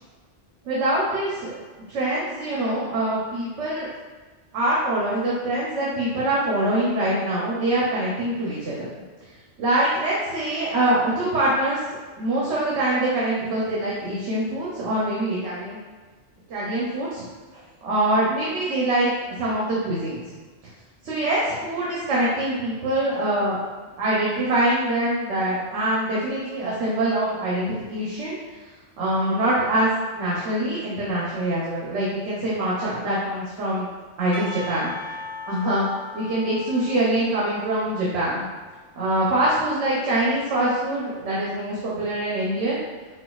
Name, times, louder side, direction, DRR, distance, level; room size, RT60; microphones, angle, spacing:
voice 1, 0.7-1.6 1.9-3.9 4.5-8.9 9.6-11.8 12.2-15.8 16.5-17.2 17.8-19.1 19.4-20.3 21.0-23.6 24.0-28.4 29.0-33.9 34.2-34.9 35.5-35.8 36.1-38.4 38.9-42.8, right 1 dB, 75° right, -7 dB, 1.0 m, -24 dB
Percussion / Church bell, 34.3-39.4, left 3 dB, 80° left, 1.0 m, -39 dB
4.4 x 2.3 x 2.3 m, 1.4 s
omnidirectional pair, 1.2 m